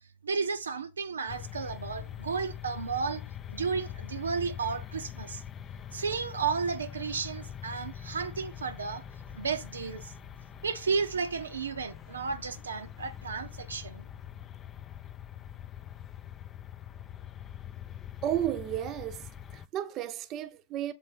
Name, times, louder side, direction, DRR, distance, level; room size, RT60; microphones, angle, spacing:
voice 1, 0.2-3.2 3.5-5.4 5.9-9.0 9.3-10.1 10.6-14.0, right 5 dB, 80° right, 0.6 m, -33 dB
sound 1, 1.3-19.7, left 10 dB, 25° left, 0.4 m, -43 dB
voice 2, 18.2-19.3 19.5-20.9, right 11 dB, 35° right, 0.7 m, -33 dB
7.0 x 3.5 x 5.6 m
figure-of-eight pair, 105°, 0 cm